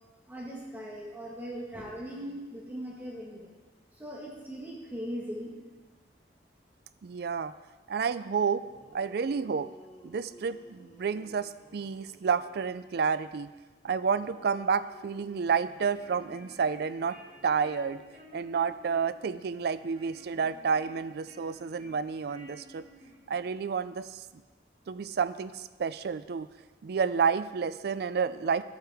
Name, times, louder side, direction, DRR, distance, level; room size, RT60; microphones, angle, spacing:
voice 1, 0.3-3.5 4.0-5.5, equal, 10° right, -4 dB, 1.4 m, -39 dB
voice 2, 7.0-7.5 7.9-8.7 8.9-9.7 10.0-13.5 13.8-17.2 17.4-18.0 18.3-22.8 23.3-24.2 24.9-26.5 26.8-28.6, right 6 dB, 60° right, 14 dB, 0.4 m, -30 dB
sound 1, 8.6-12.8 14.0-18.1, right 1 dB, 35° left, 1.9 m, -56 dB
sound 2, 15.5-23.6, left 1 dB, 35° right, 2.1 m, -54 dB
12.5 x 8.1 x 3.5 m, 1.3 s
head